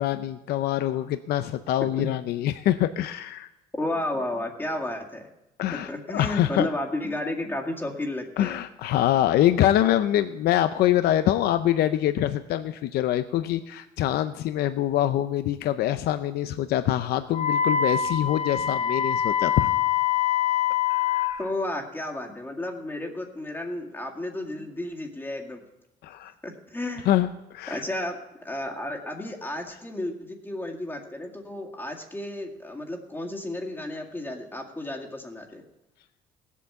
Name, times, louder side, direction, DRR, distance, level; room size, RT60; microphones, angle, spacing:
voice 1, 0.0-3.5 5.6-6.7 8.4-19.7 20.9-21.4 26.0-26.3 27.1-27.8, left 12 dB, 70° left, 11 dB, 0.6 m, -25 dB
voice 2, 3.8-5.3 5.7-8.6 21.4-25.6 26.4-27.1 27.7-35.6, left 1 dB, 10° left, 1 dB, 2.0 m, -32 dB
Wind instrument woodwind instrument, 17.3-21.4, left 9 dB, 45° left, 0.9 m, -24 dB
16.5 x 8.4 x 7.0 m, 0.95 s
cardioid pair, 110°, 17 cm